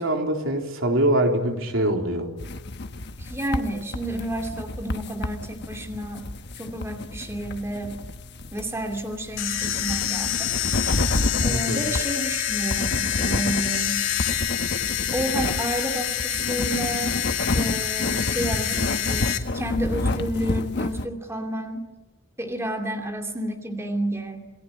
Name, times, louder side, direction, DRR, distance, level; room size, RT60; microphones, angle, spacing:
voice 1, 0.0-2.3 11.5-11.8, right 1 dB, 70° right, 3 dB, 3.8 m, -23 dB
sound 1, 2.4-21.1, left 2 dB, 55° left, 1.2 m, -30 dB
voice 2, 3.2-6.3 6.6-8.0 8.5-10.5 11.4-14.0 15.1-17.2 17.5-21.9 22.4-24.5, right 1 dB, 15° right, 4 dB, 2.6 m, -30 dB
sound 2, 9.4-19.4, left 11 dB, 85° left, 2.4 m, -27 dB
27.5 x 20.5 x 9.8 m, 1.1 s
head